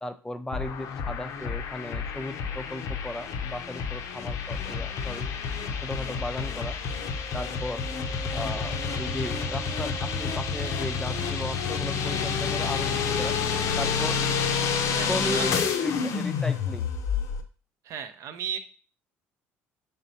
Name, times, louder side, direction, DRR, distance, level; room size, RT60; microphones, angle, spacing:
voice 1, 0.0-5.3 5.8-6.8 7.3-7.8 8.3-13.3 13.8-14.2 15.1-16.9, left 1 dB, 10° left, 9 dB, 0.4 m, -36 dB
sound 1, 0.5-17.4, left 6 dB, 60° left, 0.6 m, -29 dB
Wind instrument woodwind instrument, 6.9-11.7, right 4 dB, 10° right, 1.0 m, -45 dB
voice 2, 14.9-15.6 17.8-18.6, right 8 dB, 60° right, 9 dB, 0.6 m, -36 dB
4.0 x 3.4 x 2.7 m, 0.37 s
supercardioid pair, 80°, 6 cm